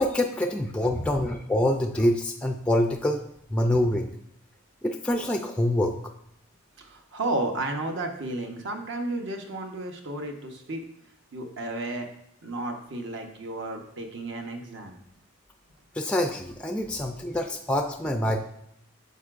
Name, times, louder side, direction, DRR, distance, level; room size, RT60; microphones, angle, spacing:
voice 1, 0.0-3.2 3.5-4.1 4.8-6.0 15.9-18.4, left 1 dB, 5° left, 4 dB, 0.3 m, -25 dB
voice 2, 6.8-10.8 11.3-12.1 12.4-15.0 16.8-16.9, right 2 dB, 60° right, 4 dB, 1.0 m, -33 dB
9.3 x 6.8 x 2.5 m, 0.74 s
head